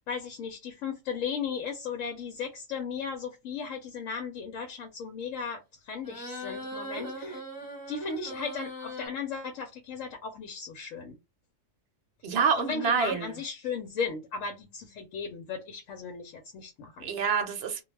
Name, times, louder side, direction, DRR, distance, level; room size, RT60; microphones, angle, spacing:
voice 1, 0.1-7.4 7.9-11.2 12.6-17.1, left 6 dB, 90° left, 1.0 m, -36 dB
sound 1, 6.0-9.1, right 1 dB, 15° left, 1.0 m, -39 dB
voice 2, 12.2-13.4 17.0-17.8, right 6 dB, 60° right, 0.8 m, -27 dB
2.3 x 2.2 x 3.2 m
omnidirectional pair, 1.3 m